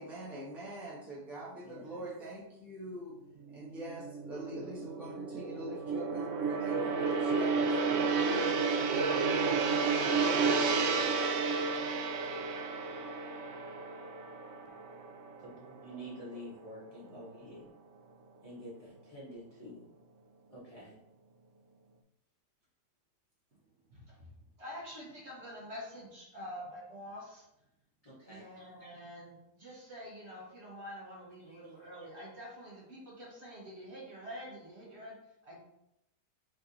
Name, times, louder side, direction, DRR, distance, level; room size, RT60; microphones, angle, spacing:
voice 1, 0.0-3.2 3.5-8.9, right 1 dB, ahead, -8 dB, 0.8 m, -44 dB
voice 2, 1.6-2.1 15.4-17.7 18.4-19.9 20.5-21.0 28.0-28.6 31.4-31.6, equal, 25° left, -8 dB, 1.0 m, -48 dB
Gong, 3.5-15.9 16.3-16.5, right 4 dB, 85° right, 0.6 m, -31 dB
voice 3, 23.9-27.5 28.2-35.1 35.4-35.6, equal, 45° right, -5 dB, 1.4 m, -47 dB
3.7 x 3.3 x 4.0 m, 0.84 s
omnidirectional pair, 1.8 m